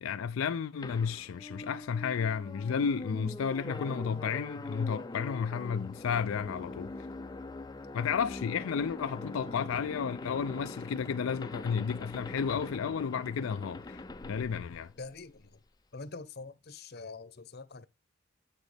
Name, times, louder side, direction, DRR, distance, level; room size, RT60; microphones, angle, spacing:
voice 1, 0.0-6.9 7.9-14.9, left 6 dB, 80° left, 0.4 m, -32 dB
sound 1, 0.8-15.6, left 2 dB, 20° left, 0.4 m, -43 dB
voice 2, 15.0-15.6 15.9-17.9, left 3 dB, 50° left, 0.8 m, -45 dB
8.0 x 6.2 x 3.3 m
head